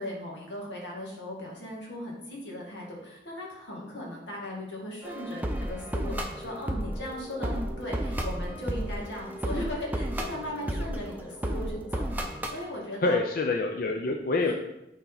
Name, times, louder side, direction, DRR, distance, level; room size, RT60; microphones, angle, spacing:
voice 1, 0.0-13.2 14.4-14.5, left 1 dB, 90° left, -3 dB, 2.1 m, -38 dB
sound 1, 5.0-12.6, equal, 10° right, 0.6 m, -33 dB
voice 2, 13.0-14.5, left 3 dB, 55° left, 2 dB, 0.5 m, -26 dB
8.4 x 4.2 x 4.0 m, 0.89 s
head